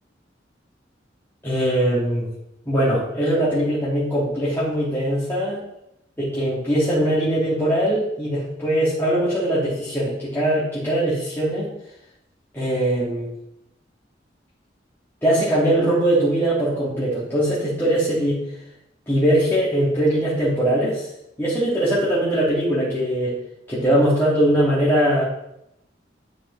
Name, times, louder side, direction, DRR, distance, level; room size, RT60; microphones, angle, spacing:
voice 1, 1.4-2.3 2.7-5.6 6.2-11.7 12.5-13.3 15.2-18.4 19.1-21.1 21.4-23.4 23.7-25.2, right 1 dB, 15° left, -10 dB, 1.9 m, -21 dB
10.5 x 4.9 x 3.2 m, 0.81 s
head